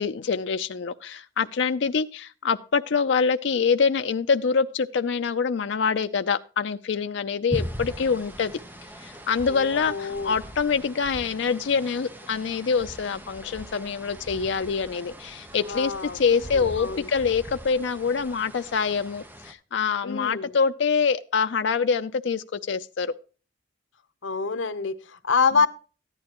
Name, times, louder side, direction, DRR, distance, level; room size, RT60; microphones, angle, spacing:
voice 1, 0.0-8.5 9.0-23.1, left 5 dB, 70° left, 0.4 m, -25 dB
sound 1, 7.5-19.5, equal, 10° right, 0.9 m, -40 dB
voice 2, 9.5-10.4 15.7-17.1 20.0-20.6 24.2-25.7, left 5 dB, 85° left, 0.9 m, -27 dB
14.0 x 10.5 x 3.0 m
head